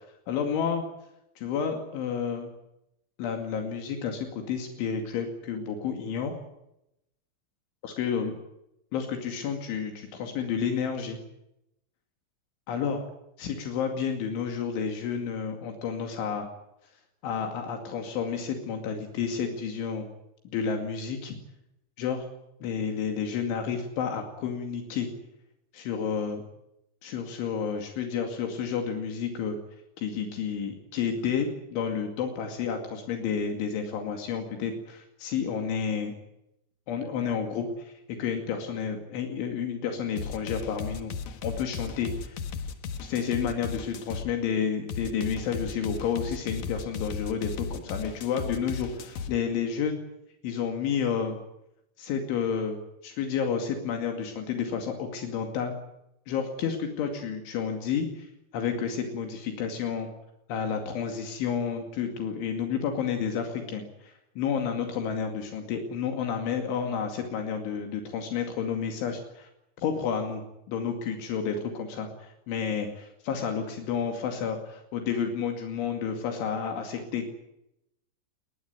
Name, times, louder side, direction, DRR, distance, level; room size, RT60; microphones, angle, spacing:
voice 1, 0.3-0.8 1.4-2.5 3.2-6.4 7.8-8.4 8.9-11.2 12.7-13.0 13.4-16.5 17.2-20.1 20.5-21.4 22.0-22.3 22.6-25.1 25.7-26.4 27.0-29.6 30.0-36.2 36.9-41.1 41.4-42.4 43.0-50.0 50.4-51.4 52.0-55.8 56.3-60.1 60.5-69.5 69.8-70.4 70.7-77.4, left 6 dB, 75° left, 4 dB, 4.8 m, -30 dB
sound 1, 40.2-44.3 44.9-49.3, left 6 dB, 60° left, 1.9 m, -36 dB
21.5 x 19.5 x 9.5 m, 0.84 s
omnidirectional pair, 5.5 m